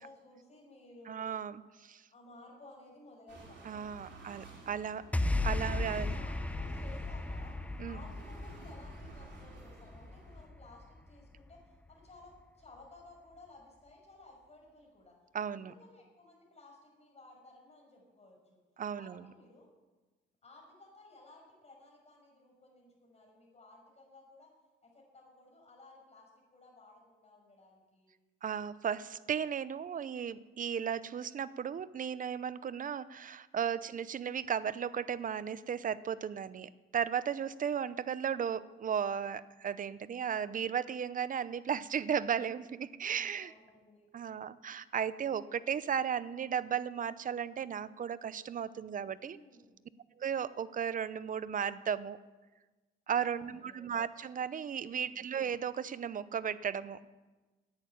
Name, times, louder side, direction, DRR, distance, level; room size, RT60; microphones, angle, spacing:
voice 1, 0.0-1.3 2.1-4.4 5.6-7.6 7.9-15.2 15.5-18.6 19.0-19.7 20.4-24.5 24.8-28.1 33.8-34.1 37.4-37.9 42.8-44.1 49.2-49.8 53.1-53.9 54.9-55.2, left 2 dB, 35° left, -1 dB, 5.9 m, -57 dB
voice 2, 1.1-2.0 3.7-5.1 5.4-6.2 7.8-8.0 15.3-15.7 18.8-19.3 28.4-43.5 44.1-49.4 50.2-52.2 53.1-57.0, right 8 dB, 40° right, 16 dB, 0.6 m, -35 dB
sound 1, 3.3-10.4, right 3 dB, 65° right, 5.8 m, -54 dB
sound 2, 5.1-11.6, left 2 dB, 5° left, 0.6 m, -36 dB
10.5 x 9.1 x 8.9 m, 1.2 s
cardioid pair, 90°, 20 cm